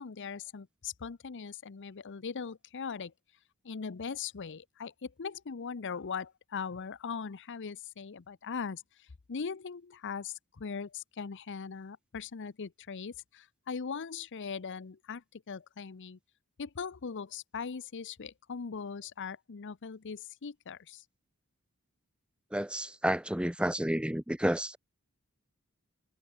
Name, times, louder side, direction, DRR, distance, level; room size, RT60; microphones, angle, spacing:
voice 1, 0.0-3.1 3.6-16.2 16.6-21.0, left 5 dB, 60° left, 0.6 m, -40 dB
voice 2, 22.5-24.8, right 1 dB, 5° right, 0.8 m, -30 dB
head